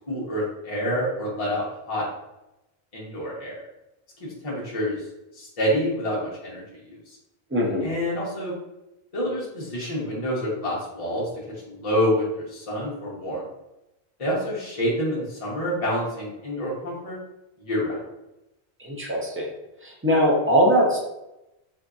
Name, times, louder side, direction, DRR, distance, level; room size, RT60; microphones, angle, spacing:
voice 1, 0.1-2.1 2.9-3.6 4.2-5.0 5.3-7.2 7.8-8.5 9.1-11.3 11.6-13.4 14.2-17.2 17.6-18.0, equal, 35° left, -6 dB, 0.8 m, -27 dB
voice 2, 7.5-7.9 18.8-19.5 19.8-21.0, equal, 20° right, -2 dB, 0.4 m, -21 dB
3.6 x 2.6 x 2.3 m, 0.93 s
omnidirectional pair, 1.1 m